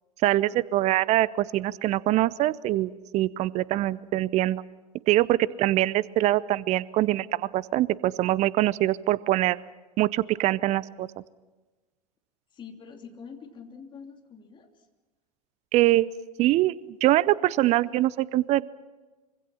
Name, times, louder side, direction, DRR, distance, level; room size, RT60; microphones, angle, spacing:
voice 1, 0.2-4.6 5.1-9.6 10.0-11.1 15.7-16.1 16.4-16.7 17.0-18.7, right 15 dB, 35° right, 21 dB, 0.6 m, -23 dB
voice 2, 12.5-14.8, left 6 dB, 25° left, 4 dB, 3.1 m, -45 dB
25.0 x 25.0 x 5.7 m, 1.2 s
figure-of-eight pair, 85°, 19 cm